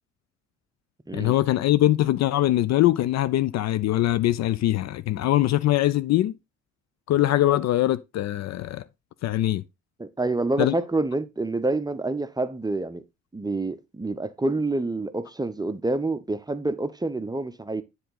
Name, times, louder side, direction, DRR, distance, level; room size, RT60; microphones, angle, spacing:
voice 1, 1.1-6.4 7.1-8.8 9.2-9.6 10.6-10.7, left 14 dB, 45° left, 0.5 m, -22 dB
voice 2, 10.0-13.0 13.3-17.8, right 2 dB, 10° right, 0.7 m, -27 dB
10.0 x 3.9 x 3.9 m
figure-of-eight pair, 50°, 40 cm